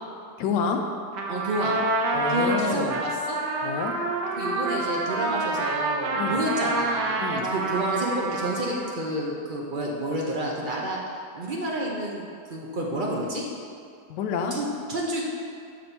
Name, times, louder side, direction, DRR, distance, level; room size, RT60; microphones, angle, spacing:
voice 1, 0.4-0.8 2.1-3.0 3.6-3.9 6.1-6.4 7.2-7.5 14.1-14.6, left 6 dB, 90° left, 4 dB, 1.3 m, -28 dB
Trumpet, 1.1-9.0, right 2 dB, 85° right, 1.3 m, -28 dB
voice 2, 1.3-1.8 2.3-3.4 4.4-11.0 11.3-12.2 12.5-13.5 14.5-15.2, right 1 dB, 55° right, -3 dB, 0.5 m, -29 dB
6.0 x 4.2 x 5.3 m, 2.3 s
omnidirectional pair, 1.8 m